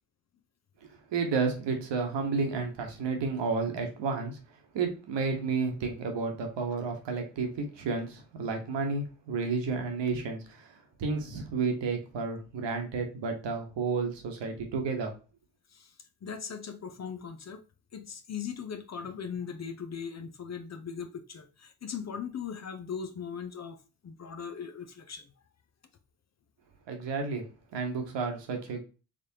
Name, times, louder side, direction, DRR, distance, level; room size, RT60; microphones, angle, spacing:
voice 1, 0.8-4.4 4.7-15.1 26.9-27.5 27.7-28.8, right 4 dB, 60° right, 1.2 m, -31 dB
voice 2, 16.2-17.6 17.9-23.8 24.0-25.3, left 7 dB, 35° left, 0.7 m, -39 dB
3.6 x 3.3 x 2.8 m
hypercardioid pair, 50°, 49 cm